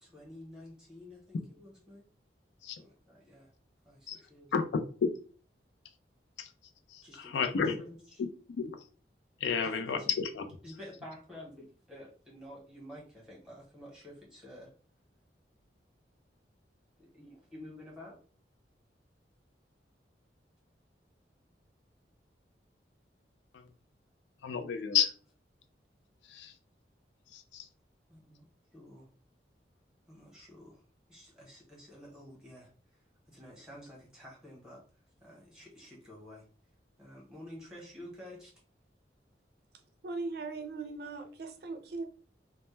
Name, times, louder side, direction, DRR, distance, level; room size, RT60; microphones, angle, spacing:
voice 1, 0.0-2.1 2.8-3.5 3.8-4.5 7.0-7.5 7.8-8.0 9.5-10.0 10.6-14.7 17.0-18.2 28.1-28.4 28.7-29.1 30.1-30.8 31.1-32.7 33.3-34.8 35.2-36.4 37.0-38.5, left 1 dB, 5° right, -4 dB, 0.9 m, -50 dB
voice 2, 6.9-7.7 8.2-8.8 9.4-10.4 23.5-23.7 24.4-25.1 26.3-26.5 27.3-27.7, left 6 dB, 85° left, 7 dB, 0.4 m, -31 dB
voice 3, 40.0-42.1, right 3 dB, 60° right, 7 dB, 0.4 m, -39 dB
2.1 x 2.0 x 3.1 m, 0.40 s
head